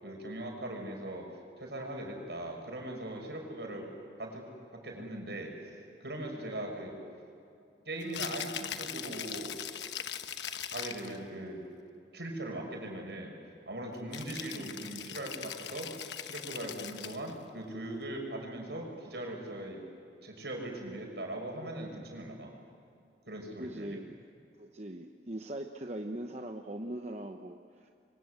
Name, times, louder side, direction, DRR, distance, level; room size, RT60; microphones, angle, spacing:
voice 1, 0.0-1.3 1.6-3.9 4.2-7.0 7.8-9.6 10.7-11.7 12.1-13.3 13.7-15.9 16.2-19.8 20.2-22.5 23.3-24.0, right 1 dB, 70° right, 1 dB, 6.5 m, -40 dB
Rattle (instrument), 8.0-11.2 14.1-17.3, left 9 dB, 85° left, 1.1 m, -40 dB
voice 2, 23.6-24.2 24.6-27.9, right 1 dB, 40° right, 4 dB, 1.0 m, -40 dB
28.0 x 24.0 x 8.1 m, 2.5 s
head